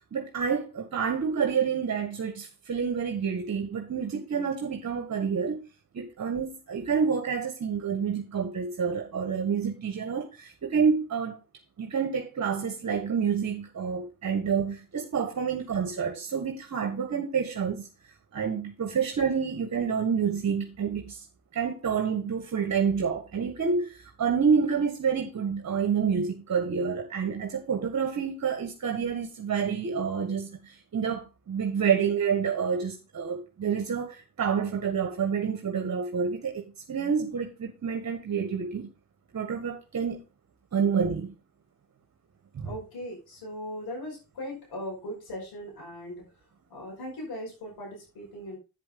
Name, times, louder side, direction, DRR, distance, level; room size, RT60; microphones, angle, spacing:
voice 1, 0.0-5.6 5.9-11.4 11.8-17.9 18.3-21.2 21.5-36.6 36.9-38.9 39.3-40.2 40.7-41.3 42.5-42.7, right 6 dB, 50° right, 1.7 m, -28 dB
voice 2, 42.6-46.3 46.7-48.6, left 1 dB, 85° left, 5.7 m, -39 dB
8.8 x 7.6 x 3.8 m
cardioid pair, 80°, 36 cm